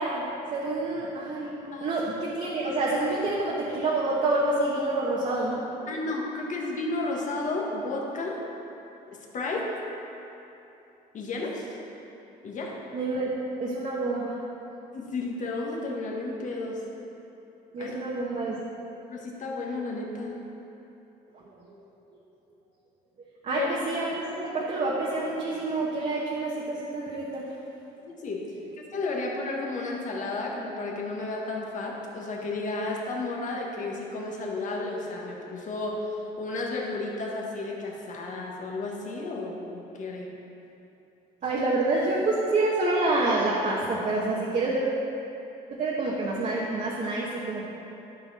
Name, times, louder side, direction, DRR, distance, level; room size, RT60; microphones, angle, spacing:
voice 1, 0.0-5.8 12.9-13.3 13.6-14.4 17.7-18.6 21.3-21.7 23.4-27.5 41.4-44.8 45.7-47.7, right 2 dB, 45° right, -5 dB, 1.3 m, -28 dB
voice 2, 5.9-8.5 9.1-9.7 11.1-11.7 12.4-12.8 14.9-16.8 17.8-18.0 19.1-20.4 23.5-23.7 28.0-40.3, left 2 dB, 50° left, -1 dB, 1.6 m, -32 dB
12.0 x 5.8 x 4.3 m, 2.9 s
cardioid pair, 110°, 17 cm